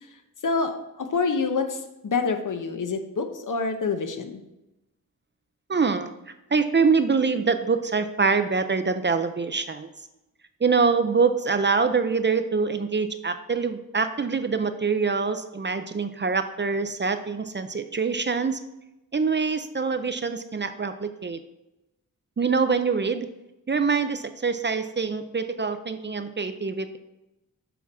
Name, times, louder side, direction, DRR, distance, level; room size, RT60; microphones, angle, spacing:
voice 1, 0.4-1.8 2.0-4.4, left 4 dB, 65° left, 7 dB, 0.9 m, -26 dB
voice 2, 5.7-6.1 6.5-9.9 10.6-18.6 19.1-21.4 22.4-23.3 23.7-27.0, right 5 dB, 35° right, 9 dB, 0.5 m, -24 dB
7.1 x 5.8 x 4.7 m, 0.93 s
wide cardioid pair, 120°, 34 cm